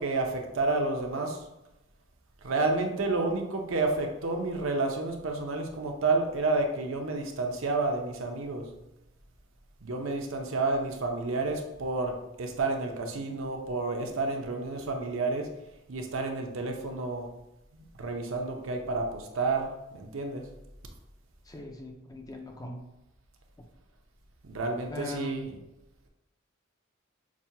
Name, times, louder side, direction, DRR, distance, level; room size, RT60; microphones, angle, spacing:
voice 1, 0.0-1.4 2.4-8.7 9.8-15.5 15.9-17.3 17.7-19.7 19.9-20.4 24.4-25.5, right 3 dB, 75° right, 2 dB, 0.6 m, -30 dB
voice 2, 21.5-22.8 24.9-25.6, left 2 dB, 20° left, 2 dB, 0.4 m, -40 dB
6.0 x 2.2 x 2.7 m, 0.92 s
head